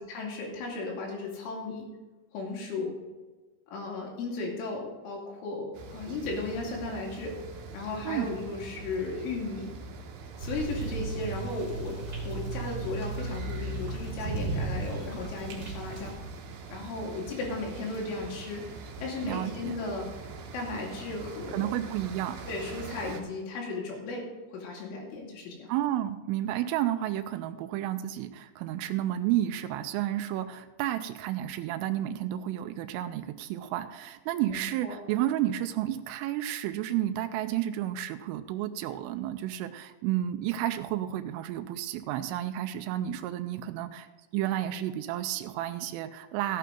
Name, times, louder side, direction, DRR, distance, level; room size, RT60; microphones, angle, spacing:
voice 1, 0.0-1.9 2.3-2.9 3.7-7.4 7.7-9.7 10.4-12.0 12.2-16.1 16.7-18.6 19.0-20.1 20.5-21.7 22.5-24.3 24.5-25.7 34.5-35.0, left 3 dB, 75° left, -1 dB, 4.9 m, -35 dB
sound 1, 5.7-23.2, right 4 dB, 70° right, 2.8 m, -44 dB
sound 2, 10.4-16.2, right 3 dB, 30° right, 2.5 m, -35 dB
voice 2, 19.2-19.8 21.5-22.4 25.7-44.1 44.3-46.6, right 12 dB, 85° right, 9 dB, 3.2 m, -31 dB
15.5 x 9.3 x 3.8 m, 1.2 s
omnidirectional pair, 5.7 m